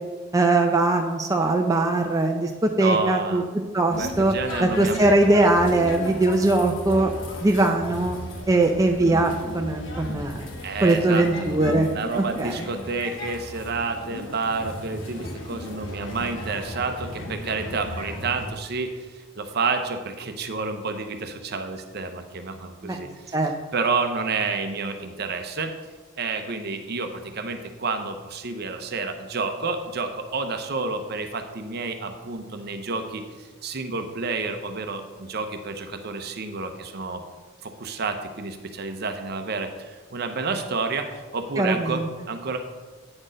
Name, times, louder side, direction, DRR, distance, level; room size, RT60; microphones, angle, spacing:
voice 1, 0.3-3.4 3.7-4.3 4.6-7.1 7.4-8.2 8.5-10.4 10.8-11.9 12.2-12.5 22.8-23.0 23.3-23.5 41.6-41.9, right 2 dB, 15° right, 3 dB, 0.4 m, -21 dB
voice 2, 2.8-3.5 4.0-5.0 10.6-11.6 11.9-23.3 23.7-25.7 26.2-37.2 37.6-42.6, right 4 dB, 50° right, 7 dB, 0.7 m, -30 dB
sound 1, 3.9-18.5, left 1 dB, 65° left, 1.2 m, -35 dB
8.7 x 4.3 x 5.1 m, 1.4 s
head